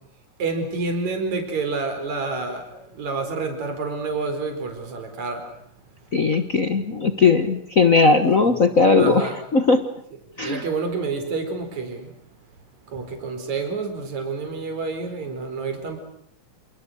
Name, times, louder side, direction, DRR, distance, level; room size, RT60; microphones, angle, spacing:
voice 1, 0.4-5.5 8.4-8.7 9.0-9.4 10.4-12.1 12.9-16.0, right 4 dB, 55° right, 5 dB, 5.7 m, -28 dB
voice 2, 6.1-9.9 10.4-10.7, left 4 dB, 70° left, 9 dB, 0.7 m, -18 dB
28.5 x 28.0 x 6.5 m, 0.68 s
omnidirectional pair, 3.8 m